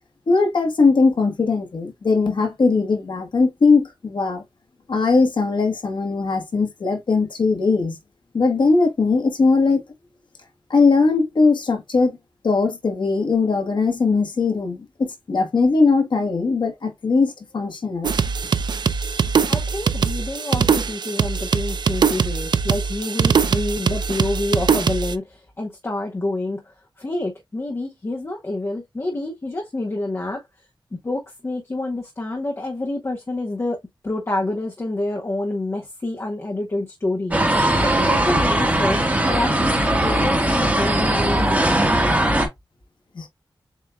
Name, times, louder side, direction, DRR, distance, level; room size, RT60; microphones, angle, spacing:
voice 1, 0.3-4.4 4.9-8.0 8.3-9.8 10.7-12.2 12.4-18.1 43.1-43.3, left 4 dB, 75° left, 1.4 m, -19 dB
sound 1, 18.0-25.1, right 6 dB, 60° right, 0.4 m, -21 dB
voice 2, 19.5-30.4 30.9-33.8 34.0-37.3 37.8-41.8, left 2 dB, 35° left, 1.0 m, -28 dB
sound 2, 37.3-42.5, right 1 dB, 20° right, 1.4 m, -19 dB
7.4 x 2.7 x 2.3 m
wide cardioid pair, 115°, 8 cm